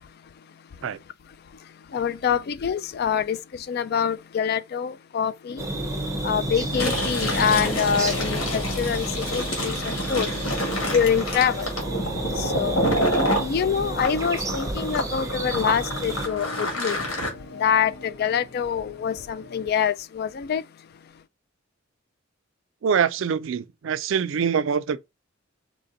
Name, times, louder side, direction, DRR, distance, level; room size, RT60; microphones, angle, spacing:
voice 1, 1.9-3.4 3.7-5.7 6.2-10.3 10.9-11.7 12.4-12.8 13.4-17.0 17.6-20.6, left 7 dB, 50° left, 0.3 m, -25 dB
sound 1, 5.5-19.7, left 1 dB, 70° left, 1.0 m, -41 dB
sound 2, 5.6-16.3, right 2 dB, 15° right, 0.6 m, -31 dB
Fill (with liquid), 6.6-13.5 14.0-17.3, equal, 90° left, 1.9 m, -28 dB
voice 2, 22.8-25.0, right 7 dB, 65° right, 0.4 m, -24 dB
4.2 x 2.8 x 3.8 m
head